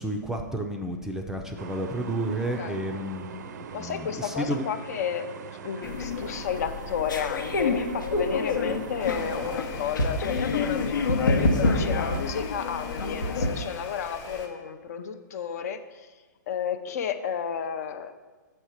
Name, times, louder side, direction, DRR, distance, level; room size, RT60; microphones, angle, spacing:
voice 1, 0.0-4.7, right 1 dB, 5° right, 3 dB, 0.4 m, -31 dB
sound 1, 1.6-9.6, right 7 dB, 60° right, 0.5 m, -41 dB
voice 2, 3.7-5.3 5.6-15.8 16.5-18.1, left 8 dB, 55° left, 9 dB, 0.6 m, -32 dB
sound 2, 5.8-13.5, left 3 dB, 85° left, 0.9 m, -27 dB
sound 3, 9.0-14.5, left 5 dB, 25° left, 0.9 m, -41 dB
6.3 x 4.4 x 6.4 m, 1.3 s
hypercardioid pair, 140°, 10 cm